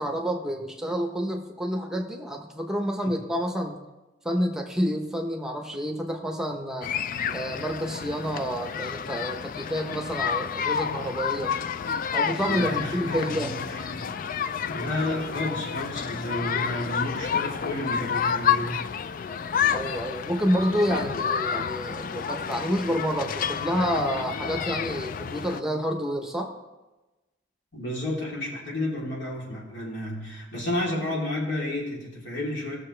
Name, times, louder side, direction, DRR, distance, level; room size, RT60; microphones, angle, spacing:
voice 1, 0.0-3.8 4.2-6.9 7.3-11.6 12.1-13.5 19.7-26.5, equal, 5° right, 2 dB, 0.9 m, -29 dB
sound 1, 6.8-25.6, left 7 dB, 50° left, 0.4 m, -30 dB
voice 2, 12.4-14.1 14.6-18.8 20.9-21.0 27.7-32.8, left 1 dB, 70° left, -4 dB, 3.3 m, -31 dB
18.0 x 6.7 x 3.3 m, 1.1 s
head